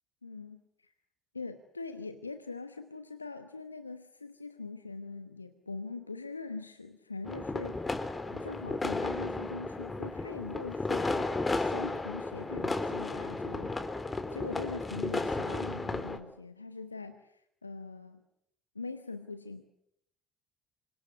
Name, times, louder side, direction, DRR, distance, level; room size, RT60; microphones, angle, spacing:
voice 1, 0.2-0.9 1.3-8.0 8.3-18.2 18.7-19.6, left 4 dB, 90° left, 9 dB, 1.0 m, -42 dB
sound 1, 7.3-16.2, left 2 dB, 20° left, 3.7 m, -34 dB
28.5 x 26.0 x 7.0 m, 0.73 s
figure-of-eight pair, 55°, 0 cm